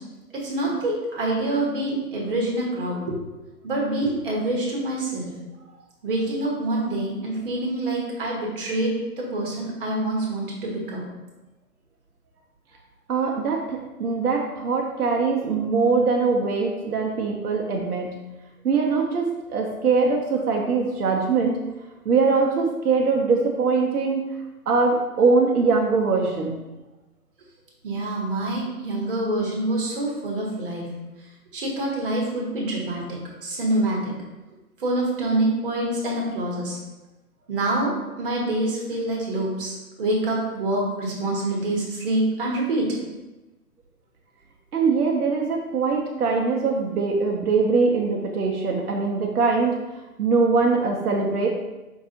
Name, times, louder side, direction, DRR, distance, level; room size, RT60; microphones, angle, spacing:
voice 1, 0.3-3.2 3.6-5.3 6.0-11.0 27.8-30.8 31.5-34.1 34.8-36.8 37.5-42.9, right 1 dB, 35° right, -2 dB, 0.9 m, -26 dB
voice 2, 13.1-18.1 18.6-21.6 22.1-24.2 24.7-26.6 44.7-49.7 50.2-51.5, right 4 dB, 75° right, 0 dB, 0.6 m, -22 dB
4.6 x 2.6 x 2.7 m, 1.1 s
hypercardioid pair, 150°, 47 cm